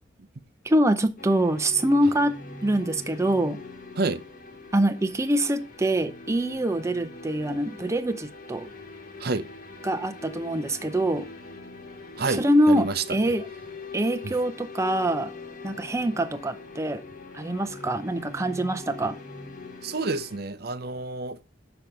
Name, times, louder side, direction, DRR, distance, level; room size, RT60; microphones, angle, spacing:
voice 1, 0.6-2.4 2.6-3.6 4.7-8.7 9.8-11.3 12.4-13.4 13.9-15.3 15.6-17.0 17.3-19.2, right 1 dB, 15° right, 0.6 m, -24 dB
sound 1, 1.2-20.4, left 3 dB, 50° left, 1.5 m, -42 dB
voice 2, 12.2-13.4 14.2-14.3 19.8-21.4, right 3 dB, 55° right, 0.6 m, -29 dB
7.0 x 6.2 x 5.1 m
head